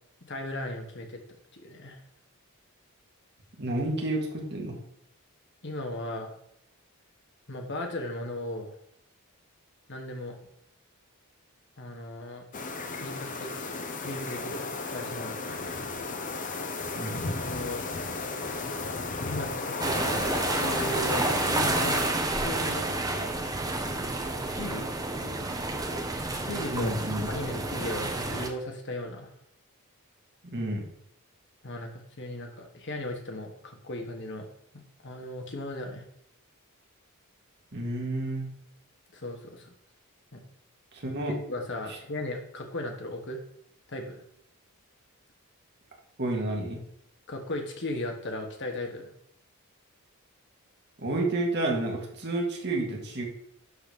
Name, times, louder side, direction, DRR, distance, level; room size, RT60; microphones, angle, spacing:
voice 1, 0.2-2.0 5.6-6.4 7.5-8.7 9.9-10.4 11.8-12.4 13.0-15.7 17.5-17.9 19.3-22.0 22.4-22.9 24.5-24.9 26.3-27.0 27.3-29.3 31.6-34.5 34.7-36.0 39.1-39.7 40.3-40.4 41.5-43.4 43.9-44.2 47.3-49.1, left 1 dB, 55° left, 3 dB, 1.6 m, -37 dB
voice 2, 3.6-4.8 16.9-17.4 26.7-27.3 30.4-30.9 37.7-38.5 40.9-41.3 41.9-42.0 46.2-46.8 51.0-53.3, right 1 dB, 50° right, 0 dB, 2.1 m, -30 dB
sound 1, 12.5-22.1, left 3 dB, 35° left, 0.8 m, -34 dB
sound 2, 19.8-28.5, right 2 dB, 15° right, 0.9 m, -30 dB
11.5 x 4.1 x 5.3 m, 0.72 s
head